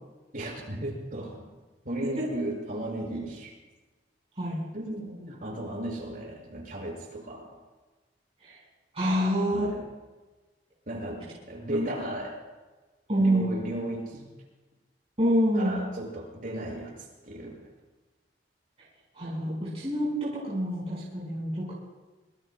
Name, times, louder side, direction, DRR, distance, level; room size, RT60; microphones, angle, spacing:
voice 1, 0.3-1.4 1.8-3.5 4.7-7.5 9.5-9.9 10.9-12.4 13.2-14.3 15.5-17.7, right 1 dB, 55° right, -1 dB, 5.9 m, -35 dB
voice 2, 8.9-9.7 11.7-11.9 13.1-13.5 15.2-15.8 19.1-21.7, equal, 35° right, -6 dB, 4.8 m, -27 dB
26.0 x 22.5 x 2.2 m, 1.2 s
head